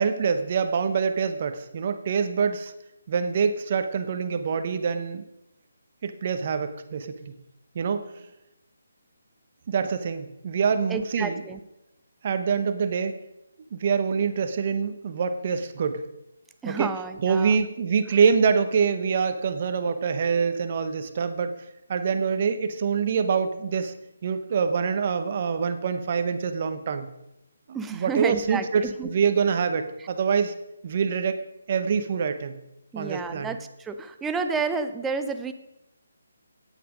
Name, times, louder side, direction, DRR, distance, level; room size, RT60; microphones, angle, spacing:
voice 1, 0.0-2.7 3.1-5.2 6.0-7.4 7.7-8.3 9.7-11.4 12.2-13.2 13.7-16.0 16.6-16.9 17.2-21.5 21.9-23.9 24.2-27.1 27.7-30.5 30.8-32.6 32.9-33.5, right 6 dB, 40° right, 9 dB, 1.0 m, -25 dB
voice 2, 10.9-11.6 16.6-17.7 27.7-29.1 30.0-30.1 32.9-35.5, right 5 dB, 10° right, 8 dB, 0.5 m, -30 dB
9.4 x 8.3 x 5.1 m, 0.90 s
figure-of-eight pair, 155°, 0 cm